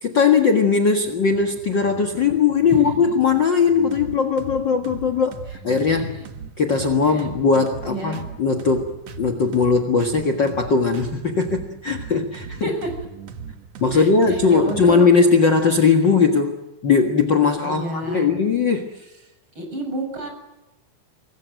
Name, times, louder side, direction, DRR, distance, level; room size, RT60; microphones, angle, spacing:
voice 1, 0.0-5.4 5.6-6.2 6.6-12.7 13.8-16.5 16.8-18.9, left 5 dB, 70° left, 8 dB, 1.1 m, -19 dB
sound 1, 1.0-15.0, right 6 dB, 55° right, 1.9 m, -39 dB
voice 2, 2.7-3.1 6.0-6.2 7.1-7.3 7.9-8.2 12.6-12.9 13.9-15.1 17.6-18.3 19.6-20.3, right 1 dB, 30° right, 4 dB, 7.5 m, -30 dB
26.0 x 21.0 x 9.2 m, 0.98 s
omnidirectional pair, 4.9 m